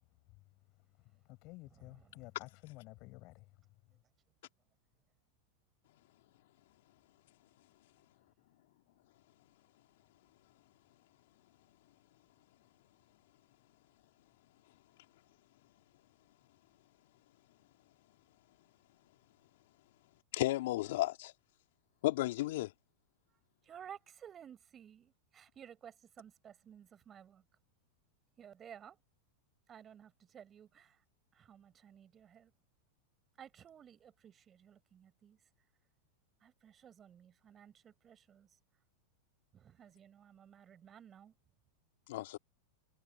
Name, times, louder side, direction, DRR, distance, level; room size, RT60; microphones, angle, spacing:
voice 1, 0.8-3.6, left 23 dB, 50° left, 7.7 m, -53 dB
voice 2, 1.7-2.3 23.6-27.4 28.4-29.0 29.7-31.0 31.3-32.5 33.4-35.4 36.4-38.5 39.5-41.3, right 9 dB, 30° right, 5.4 m, -55 dB
voice 3, 20.3-21.3 22.0-22.7 42.1-42.4, left 17 dB, 65° left, 3.2 m, -33 dB
hypercardioid pair, 100°, 0 cm